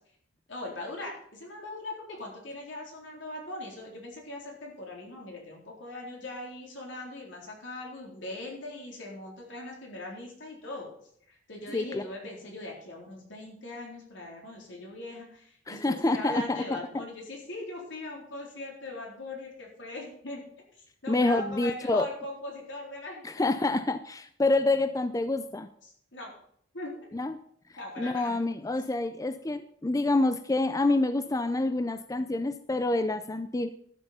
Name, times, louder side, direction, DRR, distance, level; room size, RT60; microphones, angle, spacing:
voice 1, 0.5-10.9 11.3-20.4 20.8-23.5 25.8-26.3 26.7-27.1 27.8-28.4, left 2 dB, 80° left, -1 dB, 3.9 m, -40 dB
voice 2, 15.7-17.0 21.1-22.1 23.2-25.7 27.1-27.4 28.0-33.7, left 2 dB, 20° left, 11 dB, 0.5 m, -27 dB
12.5 x 7.2 x 5.6 m, 0.66 s
head